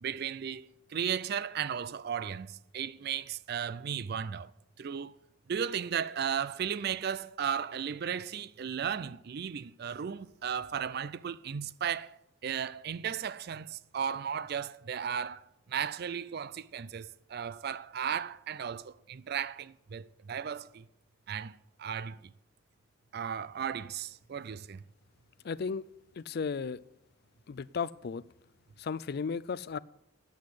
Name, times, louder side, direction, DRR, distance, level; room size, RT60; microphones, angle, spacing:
voice 1, 0.0-4.5 4.8-5.1 5.5-20.8 21.3-22.3 23.1-24.8, right 8 dB, 50° right, 0.4 m, -35 dB
voice 2, 25.4-25.8 26.2-26.8 27.5-28.2 28.8-29.8, left 5 dB, 50° left, 0.4 m, -34 dB
9.5 x 7.9 x 8.6 m
head